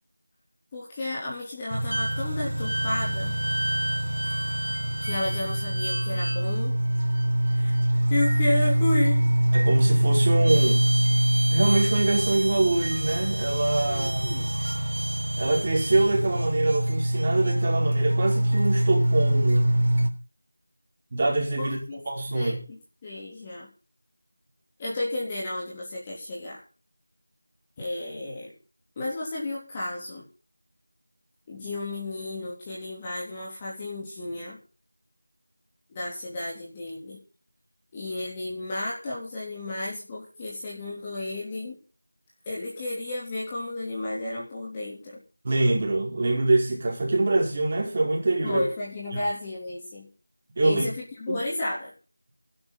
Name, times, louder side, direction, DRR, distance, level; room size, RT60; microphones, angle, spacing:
voice 1, 0.7-3.4 5.0-6.7 7.5-7.8 8.1-9.3 13.9-14.6 21.6-22.0 22.3-23.7 24.8-26.6 27.8-28.5 29.0-30.3 31.5-34.6 35.9-37.2 37.9-41.8 42.5-45.2 48.4-50.1 50.6-51.9, left 2 dB, 15° left, 3.4 m, -32 dB
sound 1, 1.7-20.1, right 1 dB, 55° right, 4.0 m, -24 dB
voice 2, 9.5-10.9 11.5-14.3 15.4-19.8 21.1-21.8 22.1-22.6 45.4-48.6 49.1-49.2 50.6-50.9 51.3-51.4, right 2 dB, 20° right, 5.0 m, -24 dB
19.5 x 11.5 x 4.1 m
figure-of-eight pair, 175°, 0 cm